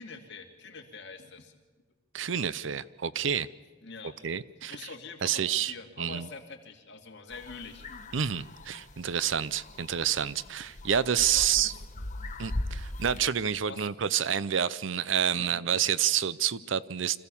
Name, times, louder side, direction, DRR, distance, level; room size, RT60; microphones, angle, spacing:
voice 1, 0.0-1.5 3.8-4.1 4.7-7.9 11.3-11.8 13.6-13.9 15.3-15.6, left 4 dB, 60° left, 2.6 m, -45 dB
voice 2, 2.1-3.5 4.2-4.9 5.2-6.3 8.1-11.7 12.4-17.2, right 8 dB, 70° right, 0.6 m, -28 dB
sound 1, 7.3-13.2, left 1 dB, 40° left, 1.2 m, -40 dB
26.0 x 15.0 x 7.1 m
head